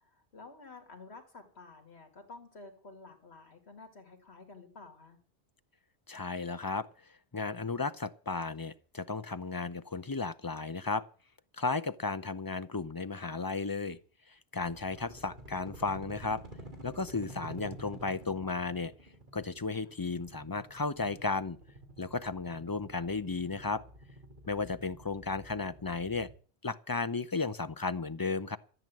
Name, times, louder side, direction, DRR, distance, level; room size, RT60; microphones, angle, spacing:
voice 1, 0.0-5.2 19.8-19.9, left 3 dB, 75° left, 2.5 m, -51 dB
voice 2, 6.1-6.9 7.3-11.0 11.6-14.0 14.3-16.4 16.8-18.9 19.3-21.6 22.0-23.8 24.5-26.3 26.6-28.6, left 4 dB, 25° left, 0.5 m, -34 dB
sound 1, 14.6-26.3, right 1 dB, 45° right, 2.9 m, -50 dB
14.0 x 9.1 x 7.5 m
omnidirectional pair, 1.1 m